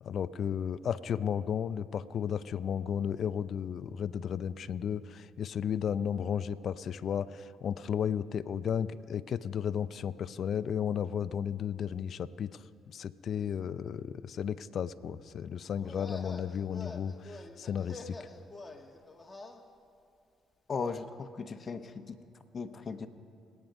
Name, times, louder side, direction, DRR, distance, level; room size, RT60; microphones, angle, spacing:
voice 1, 0.0-18.2, left 8 dB, 60° left, 14 dB, 0.5 m, -34 dB
sound 1, 15.7-19.6, left 3 dB, 20° left, 1.7 m, -46 dB
voice 2, 20.7-22.2 22.5-23.1, left 5 dB, 45° left, 9 dB, 1.1 m, -37 dB
27.0 x 9.4 x 5.3 m, 2.6 s
supercardioid pair, 65°, 0 cm